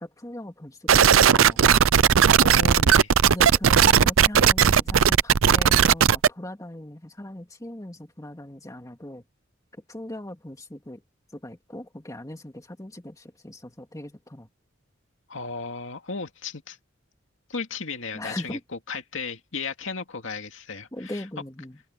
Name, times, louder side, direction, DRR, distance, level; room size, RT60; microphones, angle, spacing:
voice 1, 0.0-1.6 3.3-9.2 9.8-11.0 11.3-14.5 18.1-18.6 20.9-21.8, left 1 dB, 15° left, 2.2 m, -39 dB
sound 1, 0.9-6.3, right 8 dB, 90° right, 0.5 m, -17 dB
voice 2, 2.4-3.1 15.3-16.8 17.5-21.2, left 4 dB, 70° left, 2.4 m, -35 dB
head